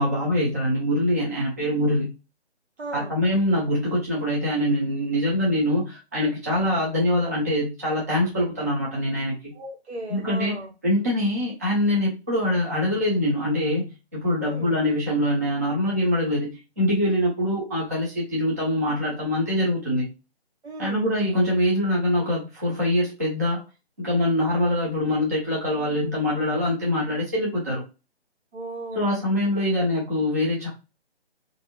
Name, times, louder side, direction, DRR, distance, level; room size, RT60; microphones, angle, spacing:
voice 1, 0.0-2.1 2.9-9.5 10.1-10.6 10.8-20.1 20.8-23.6 24.0-27.8 29.0-30.7, left 1 dB, 15° right, -6 dB, 0.5 m, -24 dB
voice 2, 2.8-3.1 9.5-10.7 14.4-14.8 20.6-21.1 28.5-29.2, right 2 dB, 75° right, 2 dB, 1.4 m, -36 dB
3.5 x 2.6 x 2.7 m, 0.29 s
figure-of-eight pair, 160°, 33 cm